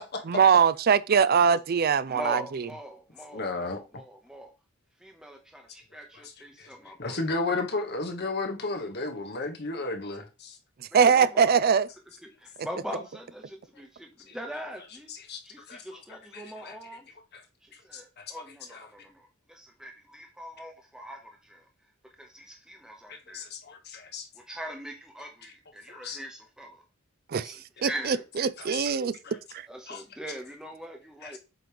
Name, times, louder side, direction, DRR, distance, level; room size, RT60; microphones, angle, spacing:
voice 1, 0.3-2.6 10.9-11.9 27.3-27.5 27.8-29.2 29.5-29.7, right 6 dB, 45° right, 0.4 m, -22 dB
voice 2, 2.1-4.5 5.0-7.2 10.9-11.6 12.2-15.1 15.4-17.1 17.6-21.7 22.0-23.4 24.5-26.8 27.3-28.2 29.7-31.4, equal, 5° right, 0.9 m, -42 dB
voice 3, 3.3-3.8 6.6-6.7 7.0-10.6 15.3-15.4 15.7-15.8 16.3-16.7 17.3-17.4 17.9-18.2 18.7-18.8 23.1-23.4 23.9-24.2 25.9-26.2 28.6-28.9 29.2-29.4 29.9-30.0 31.2-31.3, left 3 dB, 50° left, 1.3 m, -33 dB
7.8 x 3.1 x 5.1 m
head